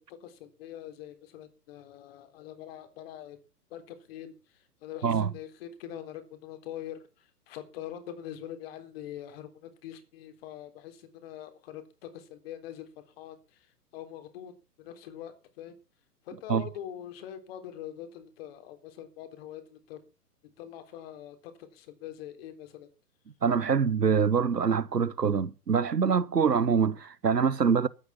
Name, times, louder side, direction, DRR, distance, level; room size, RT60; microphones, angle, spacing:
voice 1, 0.1-3.4 3.7-4.4 4.8-7.0 7.5-13.4 13.9-14.5 14.8-15.8 16.3-20.0 20.4-22.9, left 11 dB, 40° left, 3.7 m, -43 dB
voice 2, 23.4-27.9, right 6 dB, 80° right, 1.1 m, -25 dB
13.0 x 9.7 x 7.3 m
figure-of-eight pair, 115°, 48 cm